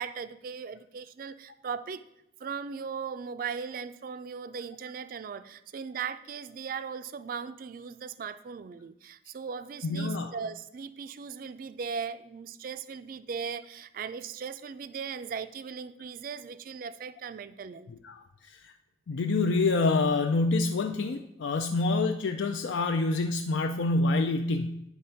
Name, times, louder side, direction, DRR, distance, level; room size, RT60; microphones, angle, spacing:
voice 1, 0.0-2.0 2.4-17.9, right 6 dB, 50° right, 13 dB, 0.3 m, -38 dB
voice 2, 9.8-10.3 18.0-18.2 19.1-24.8, left 3 dB, 80° left, 5 dB, 0.4 m, -27 dB
9.1 x 3.4 x 5.6 m, 0.83 s
head